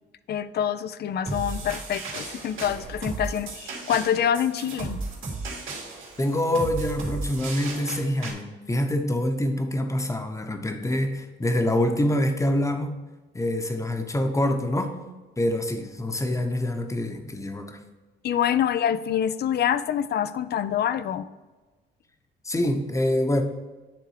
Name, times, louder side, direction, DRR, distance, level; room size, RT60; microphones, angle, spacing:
voice 1, 0.3-5.0 18.2-21.3, left 9 dB, 55° left, 14 dB, 0.5 m, -26 dB
sound 1, 1.3-8.3, right 3 dB, 80° right, 2.5 m, -35 dB
voice 2, 6.2-13.0 13.3-15.0 15.4-17.8 22.4-23.4, left 1 dB, 15° left, 6 dB, 1.0 m, -25 dB
10.0 x 3.6 x 4.9 m, 1.2 s
cardioid pair, 90°, 20 cm